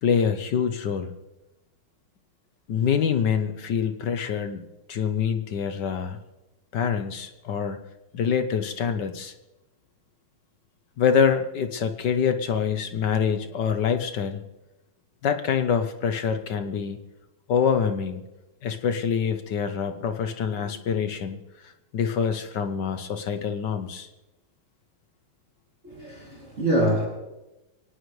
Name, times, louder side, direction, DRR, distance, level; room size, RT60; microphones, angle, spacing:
voice 1, 0.0-1.1 2.7-4.6 4.9-6.2 6.7-7.8 8.1-9.3 11.0-14.4 15.2-17.0 17.5-18.2 18.6-21.4 21.6-24.1, left 7 dB, 60° left, 9 dB, 1.4 m, -25 dB
voice 2, 25.8-27.1, right 1 dB, 30° right, -3 dB, 3.2 m, -25 dB
22.5 x 18.5 x 3.2 m, 1.0 s
omnidirectional pair, 2.3 m